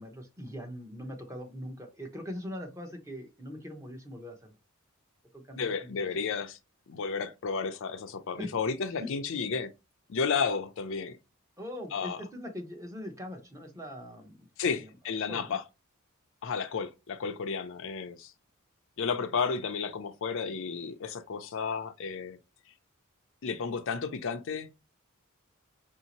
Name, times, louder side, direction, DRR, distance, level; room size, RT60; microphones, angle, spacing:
voice 1, 0.0-4.5 5.3-6.3 8.4-8.5 8.9-9.1 11.6-14.9 15.3-15.6, equal, 15° right, 0.8 m, -42 dB
voice 2, 5.6-6.6 6.9-9.7 10.1-11.2 11.9-12.2 14.6-15.6 16.4-18.3 19.0-22.4 23.4-24.7, left 5 dB, 65° left, 0.5 m, -32 dB
4.9 x 2.7 x 2.9 m
head